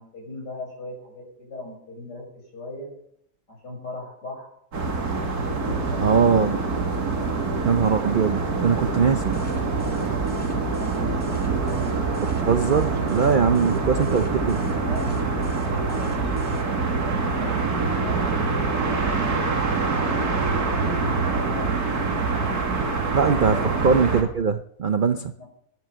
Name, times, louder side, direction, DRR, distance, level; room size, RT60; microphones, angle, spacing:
voice 1, 0.0-2.2 2.5-2.9 3.5-4.5 5.5-6.6 7.1-7.4 10.5-12.2 13.8-15.1 15.6-18.6 18.9-19.6 20.2-21.9 23.4-24.0 25.4-25.5, left 1 dB, 75° left, 1 dB, 6.3 m, -38 dB
sound 1, 4.7-24.2, right 4 dB, 60° right, 2.8 m, -25 dB
voice 2, 6.0-6.6 7.6-9.4 12.5-14.6 23.1-23.6 23.8-25.3, right 6 dB, 80° right, 10 dB, 0.4 m, -21 dB
sound 2, 9.1-16.6, right 1 dB, 5° left, 2.5 m, -37 dB
16.5 x 11.0 x 6.7 m, 0.71 s
omnidirectional pair, 1.8 m